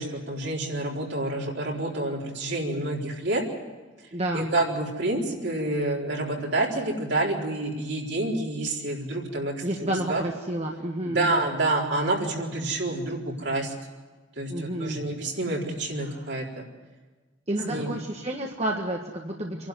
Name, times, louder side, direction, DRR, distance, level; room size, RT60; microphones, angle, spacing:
voice 1, 0.0-3.4 4.3-10.2 11.0-13.7 14.4-16.7 17.7-17.9, right 2 dB, 65° right, -2 dB, 4.4 m, -28 dB
voice 2, 4.1-4.5 9.6-11.3 14.5-15.1 16.0-16.3 17.5-19.7, right 1 dB, 35° right, 0 dB, 1.7 m, -30 dB
27.0 x 12.0 x 9.4 m, 1.3 s
head